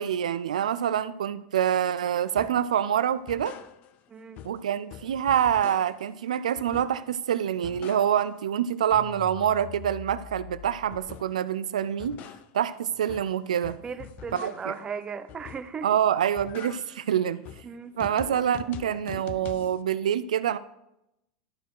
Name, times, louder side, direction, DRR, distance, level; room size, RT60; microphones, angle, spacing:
voice 1, 0.0-3.5 4.4-12.2 12.5-13.8 14.3-14.7 15.8-17.4 18.0-20.6, right 9 dB, 90° right, 15 dB, 0.4 m, -26 dB
sound 1, 2.4-2.7 3.1-4.1 4.4-6.2 6.6-7.2 7.5-8.4 8.7-11.5 11.8-14.9 15.3-15.9 16.2-19.8, left 10 dB, 45° left, 0.5 m, -44 dB
voice 2, 4.1-4.4 13.8-15.9 17.6-18.0, right 6 dB, 25° right, 13 dB, 0.6 m, -37 dB
12.0 x 4.4 x 4.7 m, 0.86 s
hypercardioid pair, 110°, 4 cm